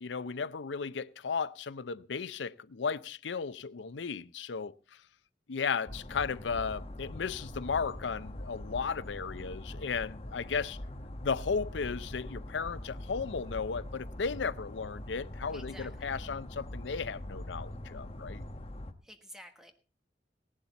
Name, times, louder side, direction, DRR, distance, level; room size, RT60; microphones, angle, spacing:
voice 1, 0.0-4.7 5.5-10.8 11.2-18.4, left 5 dB, 80° left, 0.6 m, -35 dB
sound 1, 5.9-18.9, left 1 dB, 35° left, 1.0 m, -43 dB
voice 2, 15.5-15.9 19.0-19.7, equal, 5° right, 1.3 m, -50 dB
17.0 x 11.5 x 4.1 m
head